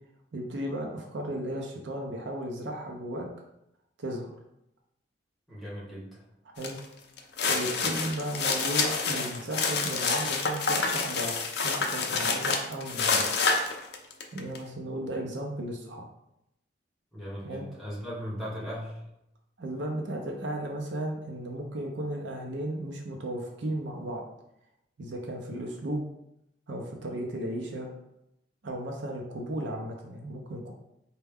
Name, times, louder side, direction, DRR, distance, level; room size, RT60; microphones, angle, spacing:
voice 1, 0.3-3.3 4.0-4.3 6.5-6.8 7.5-13.3 14.3-16.1 17.4-17.7 19.6-24.2 25.0-26.0 26.7-27.9 28.6-30.7, right 1 dB, 70° right, 1 dB, 0.6 m, -35 dB
voice 2, 5.5-6.2 17.1-18.9, equal, ahead, -7 dB, 1.0 m, -38 dB
sound 1, 6.6-6.8 7.2-14.6, left 4 dB, 55° left, 0.4 m, -28 dB
4.3 x 2.2 x 3.4 m, 0.83 s
head